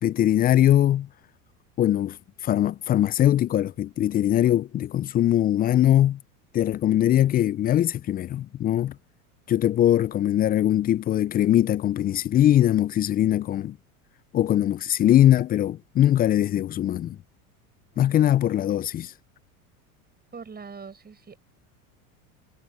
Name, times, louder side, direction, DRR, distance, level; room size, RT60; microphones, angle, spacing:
voice 1, 0.0-1.1 1.8-2.2 2.4-6.2 6.5-8.9 9.5-13.8 14.3-17.2 18.0-19.1, left 12 dB, 20° left, 0.4 m, -21 dB
voice 2, 17.9-18.4 20.3-21.4, right 5 dB, 20° right, 7.0 m, -43 dB
hypercardioid pair, 90°, 45 cm